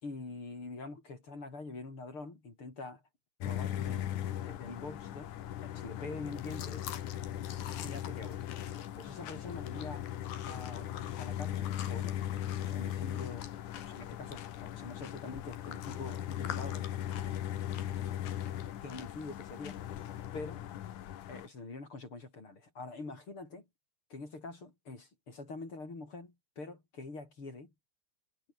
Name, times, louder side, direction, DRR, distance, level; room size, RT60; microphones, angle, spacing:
voice 1, 0.0-3.0 3.4-4.1 4.4-5.4 5.6-6.9 7.8-8.6 9.0-10.1 10.4-12.2 12.6-13.5 13.8-16.9 18.8-19.8 20.3-20.7 21.3-23.6 24.1-27.7, left 3 dB, 35° left, 5.8 m, -45 dB
sound 1, 3.4-21.5, left 11 dB, 60° left, 2.6 m, -39 dB
sound 2, 6.3-20.3, left 10 dB, 75° left, 3.9 m, -49 dB
omnidirectional pair, 4.4 m